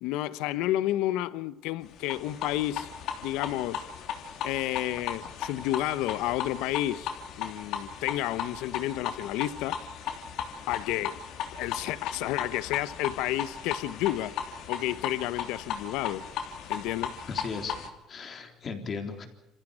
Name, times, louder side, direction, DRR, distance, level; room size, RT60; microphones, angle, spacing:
voice 1, 0.0-2.9 3.2-3.9 4.4-7.1 7.4-9.7 10.7-11.2 11.5-14.3 14.7-16.2 16.7-17.1, left 15 dB, 85° left, 0.9 m, -31 dB
sound 1, 2.0-17.9, left 8 dB, 70° left, 3.2 m, -36 dB
voice 2, 17.3-17.8 18.1-19.3, left 5 dB, 40° left, 3.6 m, -36 dB
27.5 x 15.0 x 8.8 m
cardioid pair, 120°, 0 cm